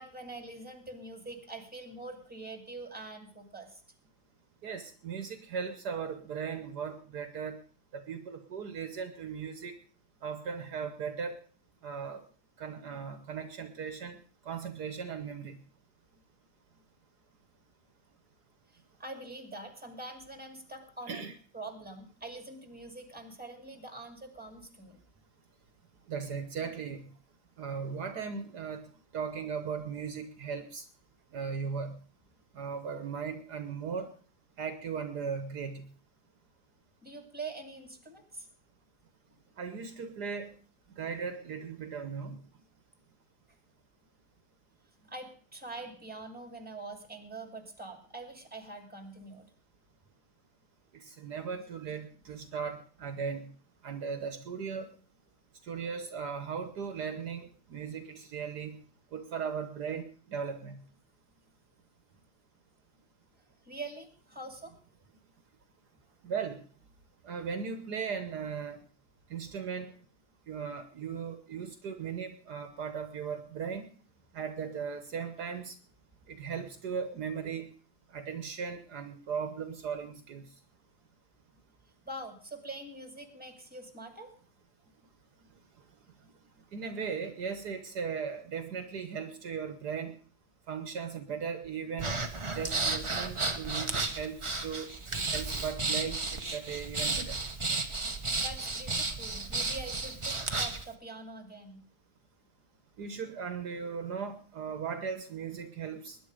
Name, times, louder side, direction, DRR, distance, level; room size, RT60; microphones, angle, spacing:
voice 1, 0.0-3.8 18.7-21.3 21.5-25.0 37.0-38.5 45.0-49.5 51.5-51.8 63.6-64.7 82.0-84.3 98.4-101.8, right 2 dB, 5° right, 5 dB, 2.4 m, -44 dB
voice 2, 4.6-7.6 7.9-9.7 10.2-11.4 11.8-12.2 12.6-14.2 14.5-15.6 21.1-21.3 26.1-27.1 27.6-28.8 29.1-30.8 31.3-32.0 32.5-34.1 34.6-35.9 39.6-40.5 41.0-42.4 51.1-53.5 53.8-54.9 55.6-58.8 59.1-60.8 66.2-66.6 67.2-68.8 69.3-69.9 70.5-73.9 74.3-75.7 76.3-77.7 78.1-80.5 86.7-90.1 90.7-92.2 92.5-94.9 95.3-97.4 103.0-106.2, right 6 dB, 65° right, 8 dB, 1.7 m, -37 dB
Breathing, 92.0-100.8, right 3 dB, 20° right, 1.0 m, -33 dB
20.5 x 10.0 x 5.0 m, 0.42 s
omnidirectional pair, 1.9 m